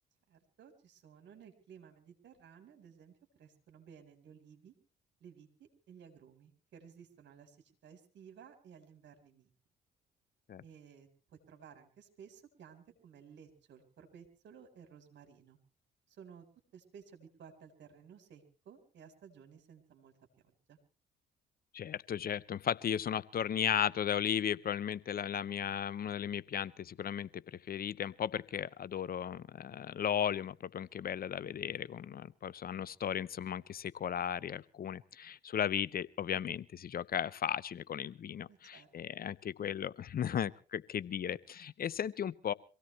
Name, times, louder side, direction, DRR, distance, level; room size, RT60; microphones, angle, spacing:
voice 1, 0.3-4.7 5.2-7.6 7.8-9.5 10.6-15.6 16.1-16.5 16.7-20.1 20.4-20.8 38.5-38.9, right 7 dB, 65° right, 6 dB, 4.0 m, -56 dB
voice 2, 21.7-42.5, left 9 dB, 50° left, 20 dB, 0.7 m, -36 dB
25.0 x 17.0 x 3.2 m, 0.35 s
hypercardioid pair, 55°, 20 cm